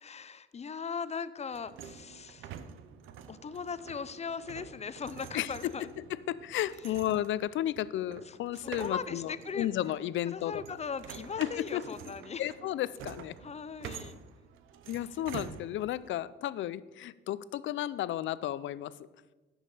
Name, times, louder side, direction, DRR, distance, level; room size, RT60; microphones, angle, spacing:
voice 1, 0.0-2.5 3.3-5.9 8.3-9.7 10.3-12.4 13.4-14.2, left 6 dB, 35° left, 14 dB, 0.7 m, -39 dB
sound 1, 1.5-16.1, right 8 dB, 90° right, 0.7 m, -48 dB
voice 2, 5.3-5.7 6.1-10.6 11.4-11.8 12.4-13.3 14.9-18.9, left 13 dB, 75° left, 17 dB, 0.5 m, -33 dB
15.5 x 6.4 x 4.9 m, 1.2 s
cardioid pair, 90°, 20 cm